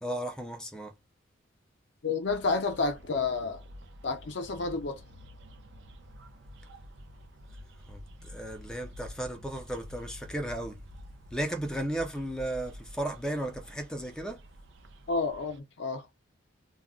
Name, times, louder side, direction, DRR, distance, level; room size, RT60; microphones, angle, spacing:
voice 1, 0.0-0.9 7.9-10.8 11.3-14.4, right 1 dB, 5° left, 0.3 m, -35 dB
voice 2, 2.0-3.6 4.0-5.0 15.1-16.1, left 3 dB, 60° left, 0.5 m, -30 dB
sound 1, 2.2-15.6, left 1 dB, 60° right, 0.5 m, -49 dB
2.3 x 2.0 x 3.5 m
head